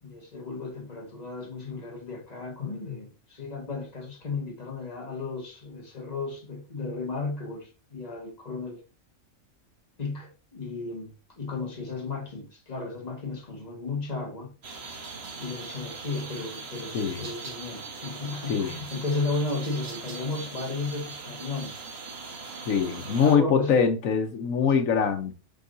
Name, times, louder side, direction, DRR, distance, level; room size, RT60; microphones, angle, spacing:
voice 1, 0.0-8.8 10.0-14.5 15.4-21.8 23.1-23.8, left 3 dB, 30° left, 1.6 m, -34 dB
sound 1, 14.6-23.4, right 4 dB, 55° right, 1.3 m, -40 dB
voice 2, 16.9-17.2 18.5-18.8 22.7-25.3, left 6 dB, 85° left, 1.2 m, -23 dB
7.3 x 4.8 x 2.7 m
omnidirectional pair, 1.4 m